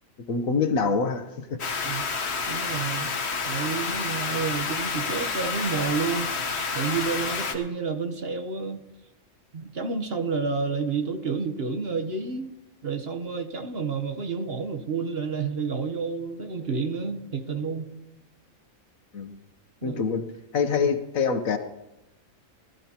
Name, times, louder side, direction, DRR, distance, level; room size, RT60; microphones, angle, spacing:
voice 1, 0.3-1.6 19.1-19.4 19.8-20.2 20.5-21.6, left 5 dB, 70° left, 8 dB, 1.4 m, -25 dB
sound 1, 1.6-7.5, left 5 dB, 50° left, 1.4 m, -29 dB
voice 2, 2.5-3.1 3.4-8.8 9.5-12.5 12.8-17.9 19.8-20.0, right 5 dB, 45° right, 7 dB, 1.2 m, -30 dB
19.5 x 13.5 x 2.9 m, 0.97 s
omnidirectional pair, 1.5 m